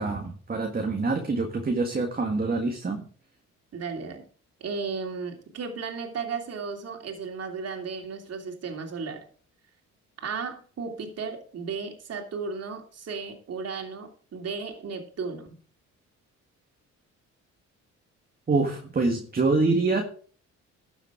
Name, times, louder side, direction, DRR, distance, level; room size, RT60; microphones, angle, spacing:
voice 1, 0.0-3.0 18.5-20.0, right 3 dB, 30° right, 3 dB, 1.8 m, -25 dB
voice 2, 3.7-4.2 4.6-9.2 10.2-15.5, right 5 dB, 55° right, 4 dB, 2.9 m, -34 dB
12.5 x 7.2 x 4.8 m, 0.43 s
cardioid pair, 90°, 30 cm